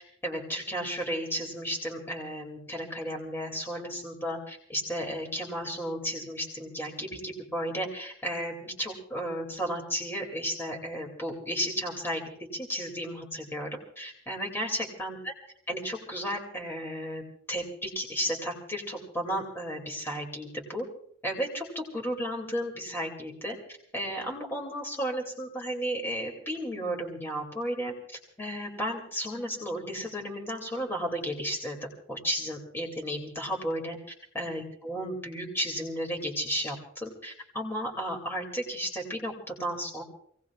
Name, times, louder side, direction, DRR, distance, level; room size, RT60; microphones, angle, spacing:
voice 1, 0.0-12.2 12.5-13.7 14.0-15.3 15.7-17.2 17.5-20.8 21.2-23.5 23.9-27.9 28.4-31.8 32.1-34.0 34.3-40.0, equal, 10° left, 1 dB, 2.6 m, -33 dB
27.0 x 18.0 x 2.4 m, 0.67 s
head